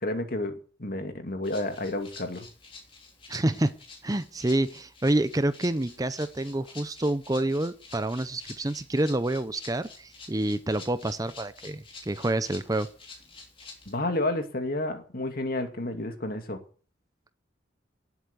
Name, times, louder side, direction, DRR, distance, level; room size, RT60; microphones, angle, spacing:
voice 1, 0.0-2.5 13.9-16.6, left 1 dB, 50° left, 6 dB, 2.3 m, -31 dB
Rattle (instrument), 1.4-14.0, left 4 dB, 30° left, 3.5 m, -48 dB
voice 2, 3.3-3.8 4.0-12.9, right 1 dB, 20° right, 13 dB, 0.6 m, -28 dB
18.0 x 8.2 x 6.8 m, 0.41 s
head